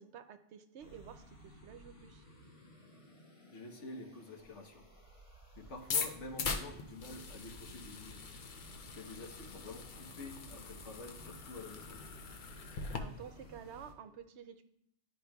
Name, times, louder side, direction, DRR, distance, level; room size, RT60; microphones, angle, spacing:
voice 1, 0.0-2.3 12.6-14.6, right 8 dB, 70° right, 9 dB, 0.8 m, -51 dB
sound 1, 0.8-13.9, equal, 30° left, 1.0 m, -56 dB
voice 2, 3.5-4.9 5.6-8.2 8.9-12.0, left 2 dB, 75° left, 3 dB, 1.4 m, -48 dB
sound 2, 5.8-13.0, left 5 dB, 50° left, 0.7 m, -41 dB
11.5 x 4.9 x 2.3 m, 0.75 s
omnidirectional pair, 1.2 m